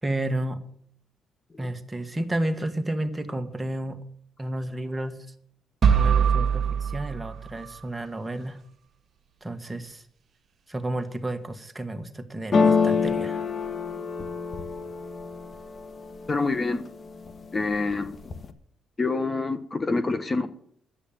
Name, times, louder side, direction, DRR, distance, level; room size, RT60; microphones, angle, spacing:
voice 1, 0.0-0.6 1.6-4.0 4.4-5.2 5.9-8.6 9.4-10.0 10.7-13.4, right 1 dB, 15° right, 1.7 m, -31 dB
sound 1, 5.8-7.8, right 7 dB, 50° right, 1.4 m, -23 dB
sound 2, 12.5-16.4 16.9-17.4 17.7-18.5, left 5 dB, 45° left, 1.4 m, -26 dB
voice 2, 16.3-16.8 17.5-18.1 19.0-20.5, left 3 dB, 30° left, 1.2 m, -26 dB
11.5 x 8.4 x 8.9 m
cardioid pair, 75°, 0 cm